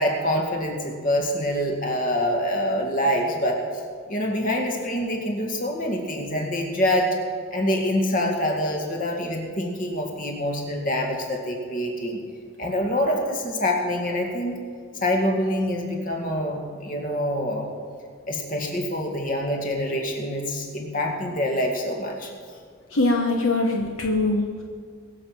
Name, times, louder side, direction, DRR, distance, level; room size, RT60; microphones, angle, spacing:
voice 1, 0.0-3.6 4.1-7.2 7.5-12.2 12.6-14.6 15.0-17.7 18.3-22.3, left 1 dB, 40° left, 1 dB, 2.0 m, -25 dB
voice 2, 22.9-24.6, left 2 dB, 65° left, 1 dB, 1.1 m, -22 dB
21.5 x 7.2 x 6.0 m, 2.1 s
head